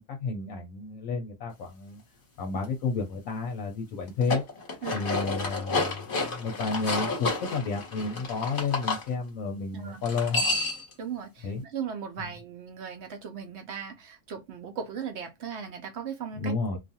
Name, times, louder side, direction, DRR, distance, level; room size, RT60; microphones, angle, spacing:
voice 1, 0.0-2.0 2.4-4.4 4.9-10.6 11.4-11.6 12.2-12.3 16.4-16.8, left 4 dB, 65° left, 0.9 m, -31 dB
sound 1, 4.1-9.0 10.0-10.9, left 3 dB, 40° left, 1.0 m, -30 dB
voice 2, 11.0-16.8, right 7 dB, 65° right, 0.7 m, -37 dB
2.5 x 2.3 x 2.6 m
omnidirectional pair, 1.6 m